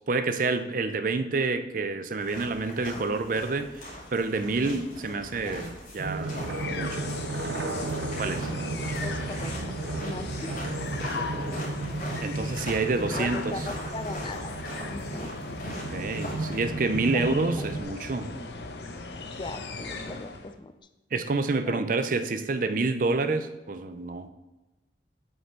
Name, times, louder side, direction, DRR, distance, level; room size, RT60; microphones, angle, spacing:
voice 1, 0.1-3.7 4.1-6.3 6.7-7.1 8.2-8.5 12.2-13.5 15.9-18.3 21.1-24.3, right 3 dB, 50° right, 10 dB, 0.5 m, -28 dB
sound 1, 2.2-16.6, left 1 dB, 50° left, 2.5 m, -41 dB
sound 2, 6.0-17.8, right 2 dB, 85° right, 0.7 m, -34 dB
sound 3, 6.3-20.6, left 3 dB, 65° left, 0.8 m, -38 dB
voice 2, 9.0-10.6 11.0-11.6 12.7-14.6 14.9-15.3 17.1-17.7 19.3-20.7 21.7-21.8, left 2 dB, 25° left, 8 dB, 0.4 m, -39 dB
7.6 x 5.5 x 4.5 m, 1.1 s
head